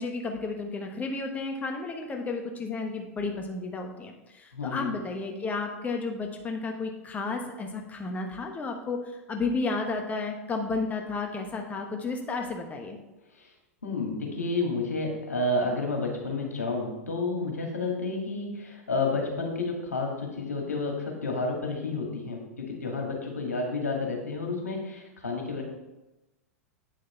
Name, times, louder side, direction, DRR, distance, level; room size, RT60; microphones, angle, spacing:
voice 1, 0.0-13.0, left 3 dB, 20° left, 3 dB, 1.1 m, -32 dB
voice 2, 4.5-4.9 13.4-13.5 13.8-25.6, left 3 dB, 85° left, 1 dB, 2.1 m, -30 dB
8.7 x 6.4 x 4.4 m, 1.0 s
figure-of-eight pair, 95°, 8 cm